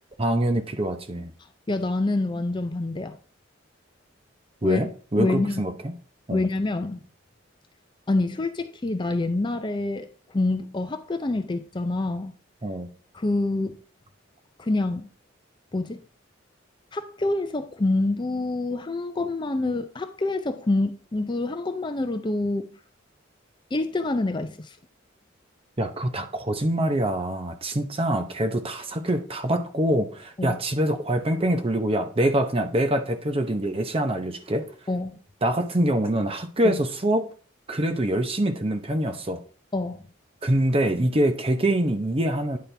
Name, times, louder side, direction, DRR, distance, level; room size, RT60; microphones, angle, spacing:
voice 1, 0.2-1.3 4.6-5.9 6.3-6.4 12.6-12.9 25.8-34.6 35.4-37.3 37.7-39.4 40.4-42.6, right 1 dB, 30° right, 0.8 m, -25 dB
voice 2, 1.7-3.2 4.6-4.8 5.2-5.6 6.3-7.0 8.1-12.3 13.1-13.8 14.6-15.1 15.7-16.0 16.9-22.7 23.7-24.8 30.4-30.6 34.9-35.2 36.6-36.8 39.7-40.0, left 2 dB, 25° left, 0.5 m, -26 dB
9.5 x 4.3 x 3.3 m
head